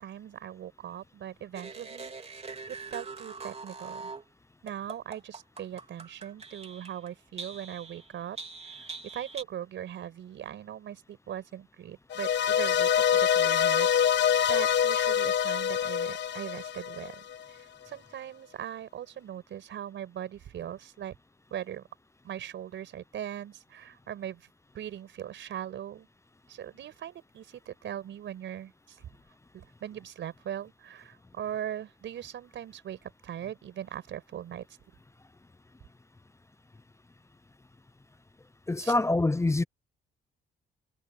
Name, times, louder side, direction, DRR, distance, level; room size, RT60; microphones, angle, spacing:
voice 1, 0.0-2.1 2.9-4.1 4.6-8.4 8.6-8.9 9.1-14.2 14.5-17.2 17.5-21.2 21.5-21.8 22.2-24.5 24.7-26.1 26.5-29.1 29.5-34.8 38.8-38.9, right 10 dB, 70° right, 5.3 m, -40 dB
sound 1, 1.5-4.2 4.7-7.1 7.4-9.4, right 4 dB, 30° right, 3.5 m, -43 dB
sound 2, 12.1-17.4, left 9 dB, 65° left, 1.1 m, -25 dB
voice 2, 38.7-39.6, left 2 dB, 15° left, 0.6 m, -25 dB
cardioid pair, 90°, 20 cm